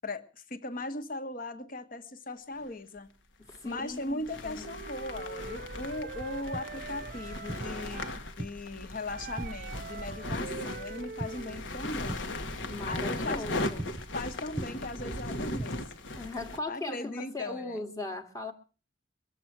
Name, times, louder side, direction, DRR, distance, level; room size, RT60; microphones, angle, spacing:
voice 1, 0.0-3.1 3.6-8.1 8.4-13.5 14.1-15.8 16.7-17.8, left 2 dB, 45° left, 1.3 m, -38 dB
sound 1, 2.6-2.7 3.5-16.6, left 2 dB, 75° left, 1.4 m, -38 dB
voice 2, 3.4-4.7 7.2-7.3 12.7-13.9 16.2-18.5, left 2 dB, 15° left, 1.3 m, -39 dB
Wind instrument woodwind instrument, 4.6-8.2 9.1-11.6, right 5 dB, 50° right, 0.6 m, -43 dB
sound 2, 5.9-15.7, right 1 dB, 25° right, 0.8 m, -43 dB
22.5 x 7.9 x 6.0 m
head